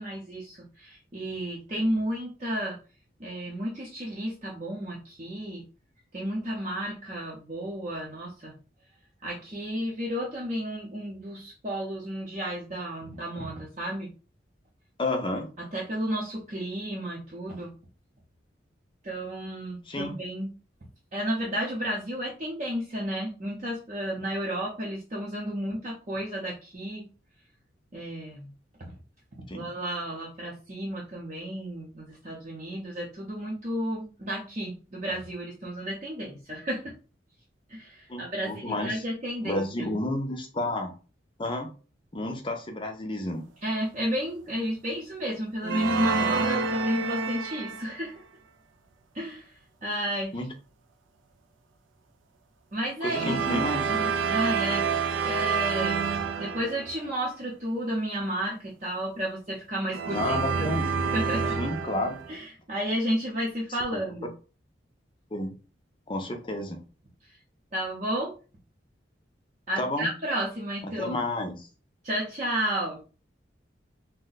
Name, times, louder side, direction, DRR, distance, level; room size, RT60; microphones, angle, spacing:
voice 1, 0.0-2.8 3.2-5.6 6.1-8.5 9.2-14.1 15.6-17.7 19.0-20.5 21.1-27.1 27.9-28.5 29.5-36.9 37.7-39.9 43.6-48.1 49.1-49.5 49.8-50.4 52.7-53.6 54.3-54.9 55.2-56.0 56.4-60.7 61.1-61.6 62.3-64.3 67.7-68.3 69.7-71.2 72.0-73.0, equal, 40° right, -4 dB, 0.6 m, -32 dB
voice 2, 15.0-15.5 19.9-20.2 29.5-29.7 38.1-39.0 39.4-40.9 41.4-41.7 42.1-43.4 50.3-50.5 53.0-54.2 60.1-60.9 61.6-62.2 63.9-64.0 65.3-65.5 66.1-66.8 69.8-70.1 71.0-71.7, left 1 dB, 25° left, 5 dB, 0.5 m, -31 dB
sound 1, 45.6-48.1 53.1-57.1 59.9-62.4, right 5 dB, 90° right, 0.4 m, -28 dB
2.6 x 2.1 x 3.9 m, 0.35 s
head